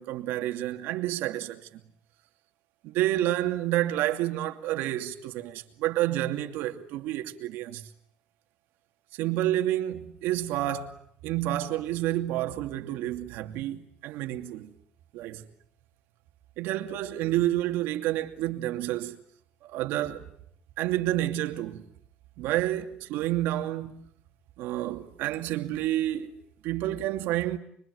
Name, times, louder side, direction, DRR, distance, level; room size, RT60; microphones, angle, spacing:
voice 1, 0.0-1.8 2.8-7.9 9.1-10.9 11.2-14.8 15.1-15.5 16.6-19.2 19.6-20.3 20.8-21.9 22.4-24.0 24.6-27.6, right 14 dB, 85° right, 2.7 m, -29 dB
26.0 x 23.5 x 9.5 m
cardioid pair, 160°, 4 cm